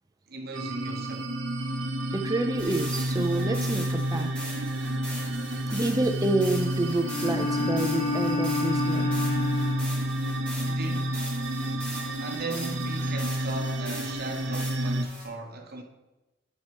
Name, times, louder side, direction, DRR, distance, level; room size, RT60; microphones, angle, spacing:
voice 1, 0.3-1.3 10.6-11.2 12.2-15.8, right 2 dB, 55° right, 0.9 m, -37 dB
sound 1, 0.5-15.0, right 1 dB, 85° right, 0.7 m, -30 dB
voice 2, 2.1-4.8 5.7-9.1, right 2 dB, 20° right, 0.5 m, -28 dB
sound 2, 2.5-15.3, equal, 5° left, 2.5 m, -41 dB
Bowed string instrument, 7.0-10.1, left 3 dB, 45° left, 0.4 m, -29 dB
11.0 x 5.6 x 3.0 m
head